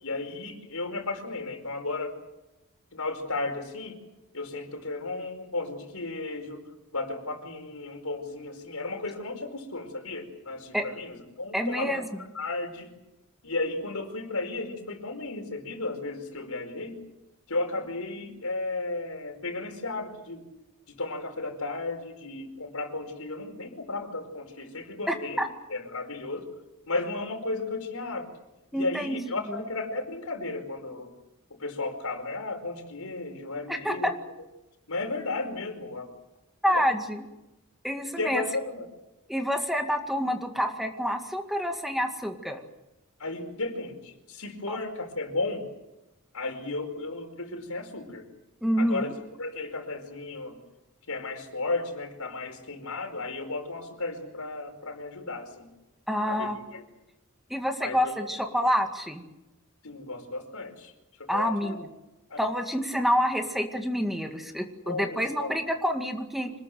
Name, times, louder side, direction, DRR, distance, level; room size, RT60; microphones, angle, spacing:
voice 1, 0.0-2.1 2.9-4.0 4.3-6.6 6.9-12.0 12.3-12.9 13.4-17.0 17.5-20.4 20.9-25.4 25.7-26.5 26.9-28.3 28.7-31.1 31.6-34.1 34.9-36.1 36.7-36.8 38.2-38.9 43.2-45.7 46.3-48.2 48.8-49.1 49.4-50.6 51.1-55.7 56.2-56.8 57.8-58.3 59.8-60.9 61.2-61.8 62.3-62.4 64.8-65.5, left 3 dB, 85° left, 6 dB, 4.8 m, -34 dB
voice 2, 11.5-12.2 25.1-25.5 28.7-29.2 33.7-34.1 36.6-37.2 37.8-38.5 39.3-42.6 44.7-44.8 48.6-49.1 56.1-56.6 57.5-59.2 61.3-61.9 62.4-66.5, equal, ahead, 4 dB, 2.1 m, -28 dB
26.0 x 20.5 x 7.8 m, 0.94 s
head